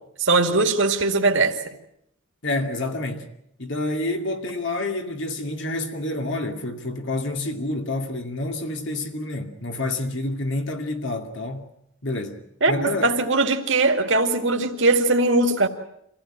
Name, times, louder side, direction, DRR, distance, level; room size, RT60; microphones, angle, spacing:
voice 1, 0.2-1.5 12.6-15.7, right 3 dB, 60° right, 2.3 m, -20 dB
voice 2, 2.4-3.3 3.6-11.7 12.0-12.4 12.7-13.1, left 2 dB, 55° left, 2.4 m, -28 dB
26.0 x 16.0 x 9.0 m
head